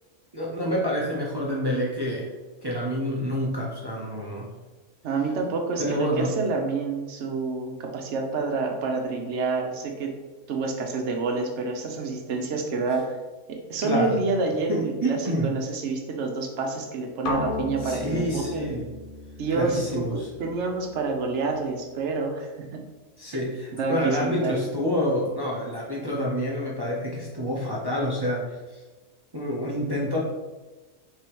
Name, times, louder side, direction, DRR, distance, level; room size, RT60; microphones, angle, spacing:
voice 1, 0.3-2.3 2.6-4.5 5.8-6.3 13.8-14.2 14.7-15.5 17.8-18.8 19.5-20.3 23.2-28.8 29.3-30.2, equal, 35° right, -4 dB, 0.4 m, -28 dB
voice 2, 5.0-10.2 10.5-13.2 13.5-18.7 19.4-22.8 23.7-24.6, right 4 dB, 65° right, 2 dB, 0.9 m, -28 dB
sound 1, 17.3-21.2, left 2 dB, 60° left, 0.5 m, -34 dB
4.8 x 3.4 x 2.9 m, 1.2 s
omnidirectional pair, 1.4 m